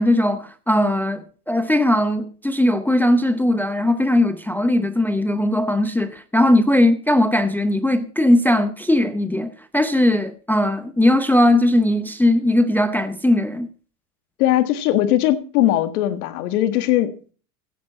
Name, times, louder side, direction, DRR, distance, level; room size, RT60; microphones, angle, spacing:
voice 1, 0.0-13.7, left 1 dB, 5° left, 0.6 m, -19 dB
voice 2, 14.4-17.3, left 13 dB, 75° left, 1.6 m, -20 dB
15.5 x 10.0 x 4.1 m
supercardioid pair, 115°, 45 cm